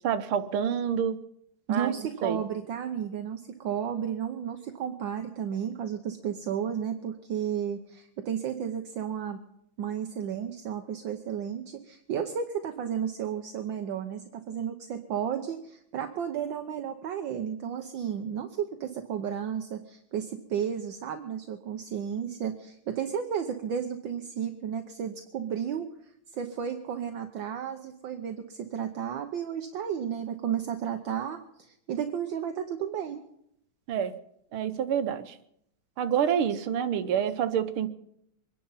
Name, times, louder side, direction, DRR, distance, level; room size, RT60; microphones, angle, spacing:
voice 1, 0.0-1.2 1.7-1.9 2.2-2.4 33.9-34.1 34.5-35.4 36.0-37.9, right 8 dB, 85° right, 11 dB, 1.8 m, -27 dB
voice 2, 1.7-9.4 9.8-25.9 26.3-33.2, right 8 dB, 65° right, 6 dB, 1.6 m, -33 dB
24.0 x 10.5 x 5.6 m, 0.74 s
omnidirectional pair, 2.3 m